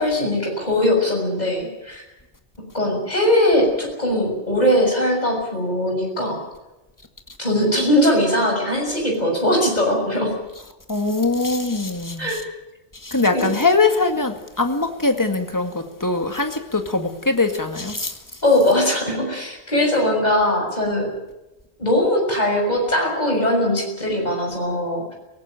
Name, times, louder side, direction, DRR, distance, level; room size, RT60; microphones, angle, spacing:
voice 1, 0.0-2.0 2.7-6.4 7.4-10.3 12.2-12.4 13.3-13.5 18.4-21.1 21.8-25.1, left 1 dB, 40° left, 7.0 m, -20 dB
voice 2, 10.9-12.4 13.0-18.2, left 3 dB, 15° left, 2.1 m, -22 dB
23.0 x 18.0 x 9.0 m
omnidirectional pair, 1.1 m